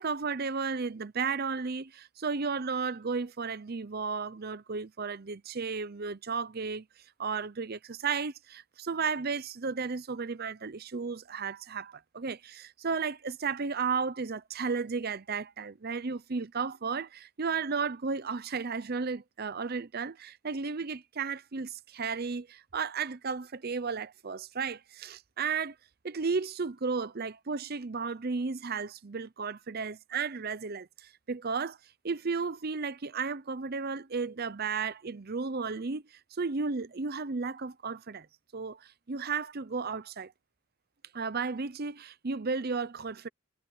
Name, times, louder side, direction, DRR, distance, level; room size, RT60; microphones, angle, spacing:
voice 1, 0.0-6.9 7.2-25.7 26.0-31.8 32.0-36.0 36.3-38.3 38.5-40.3 41.1-43.3, right 5 dB, 45° right, 0.7 m, -34 dB
head